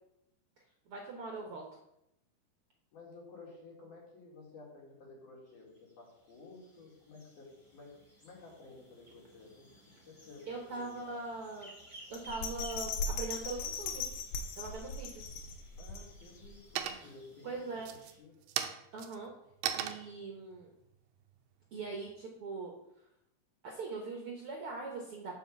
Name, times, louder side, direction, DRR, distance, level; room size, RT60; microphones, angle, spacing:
voice 1, 0.6-1.6 10.5-11.7 12.1-14.1 14.6-15.3 17.0-17.1 17.4-17.9 18.9-19.3 19.7-20.7 21.7-22.7 23.6-25.4, right 3 dB, 70° right, 1 dB, 1.3 m, -41 dB
voice 2, 2.9-7.9 8.2-9.7 10.1-11.2 15.8-17.8 18.2-18.4, left 3 dB, 65° left, -2 dB, 3.6 m, -53 dB
sound 1, 5.5-18.2, equal, 10° left, 1.4 m, -58 dB
Bell, 12.1-16.5 16.9-17.0, left 3 dB, 80° left, 2.8 m, -38 dB
sound 2, 15.1-15.7 16.1-16.5 16.8-17.3 17.8-22.2, right 10 dB, 90° right, 1.6 m, -39 dB
7.9 x 4.8 x 7.2 m, 0.81 s
omnidirectional pair, 4.1 m